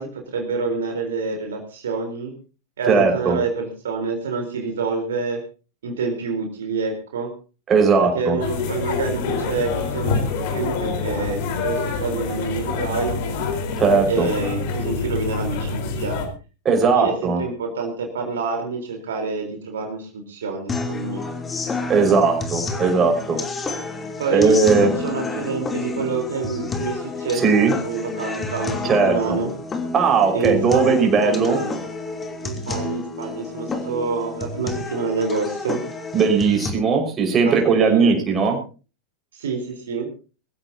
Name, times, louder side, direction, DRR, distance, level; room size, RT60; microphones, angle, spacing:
voice 1, 0.0-2.3 2.8-5.4 5.8-7.3 8.0-13.2 14.1-16.2 16.8-21.2 24.2-29.5 30.3-31.8 32.4-35.8 37.5-38.1 39.3-40.1, right 4 dB, 65° right, 2 dB, 4.1 m, -27 dB
voice 2, 2.9-3.4 7.7-8.4 13.8-14.3 16.7-17.4 21.9-23.4 24.3-24.9 27.4-27.7 28.8-29.4 29.9-31.6 36.1-38.6, right 5 dB, 25° right, 3 dB, 5.4 m, -18 dB
Kanaleneiland Starkenburghof Friday Morning Market, 8.4-16.3, left 4 dB, 50° left, 4.3 m, -26 dB
sound 1, 20.7-36.7, left 3 dB, 15° left, 3.1 m, -30 dB
23.5 x 15.5 x 2.9 m, 0.34 s
figure-of-eight pair, 90°, 0 cm